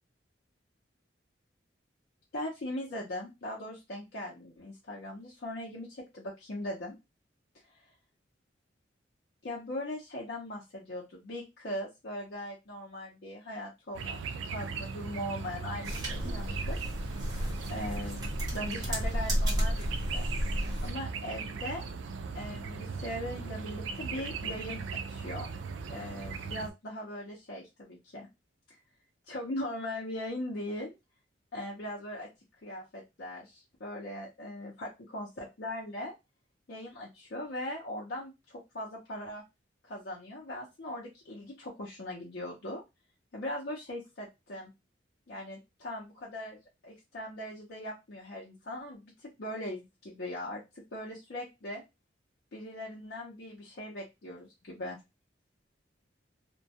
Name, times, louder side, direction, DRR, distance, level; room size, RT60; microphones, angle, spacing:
voice 1, 2.3-6.9 9.4-14.2 14.5-16.8 17.7-20.3 20.8-21.8 22.3-24.8 25.1-25.5 25.9-28.3 28.7-28.8 29.3-31.0 31.5-32.3 32.6-36.1 36.7-39.4 39.8-42.8 43.3-44.7 45.3-46.6 46.8-51.8 52.5-55.0, left 1 dB, 60° left, -4 dB, 0.6 m, -40 dB
sound 1, 13.9-26.7, right 5 dB, 85° right, 0.3 m, -38 dB
sound 2, 15.8-20.9, equal, 20° right, 1.1 m, -32 dB
2.2 x 2.1 x 2.7 m, 0.23 s
head